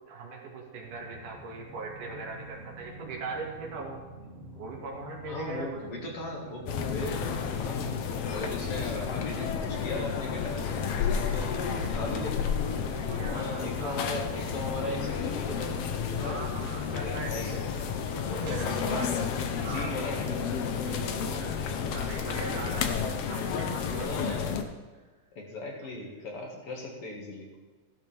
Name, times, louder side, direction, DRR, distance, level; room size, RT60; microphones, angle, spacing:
voice 1, 0.1-4.0 4.6-5.8 11.8-12.2 13.1-14.5 14.8-15.0 16.2-17.6 17.9-20.0 20.8-24.4 25.8-25.9, right 3 dB, 85° right, -1 dB, 3.7 m, -40 dB
sound 1, 0.8-13.8, right 2 dB, 20° left, 2.6 m, -48 dB
voice 2, 5.3-7.9 8.3-12.5 13.3-16.4 16.9-19.3 19.6-20.7 23.8-24.6 25.4-27.5, left 2 dB, 50° left, -1 dB, 2.8 m, -38 dB
sound 2, 6.7-24.6, left 6 dB, 65° left, 1.6 m, -31 dB
sound 3, 7.7-19.4, right 3 dB, 60° right, 3.0 m, -51 dB
15.5 x 12.0 x 3.5 m, 1.3 s
omnidirectional pair, 3.5 m